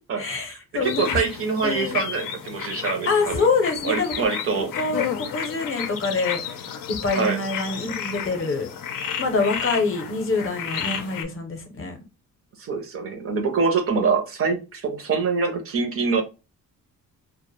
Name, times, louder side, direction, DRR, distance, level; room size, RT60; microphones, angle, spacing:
voice 1, 0.1-1.2 1.6-2.0 3.1-4.3 4.6-8.7 9.2-12.0, left 4 dB, 40° left, 5 dB, 0.6 m, -26 dB
sound 1, 0.8-11.2, left 8 dB, 90° left, 0.5 m, -32 dB
voice 2, 0.8-3.4 3.8-4.7 7.1-7.4 12.6-16.2, right 5 dB, 45° right, 4 dB, 0.5 m, -24 dB
2.1 x 2.0 x 3.0 m, 0.29 s
cardioid pair, 140°, 33 cm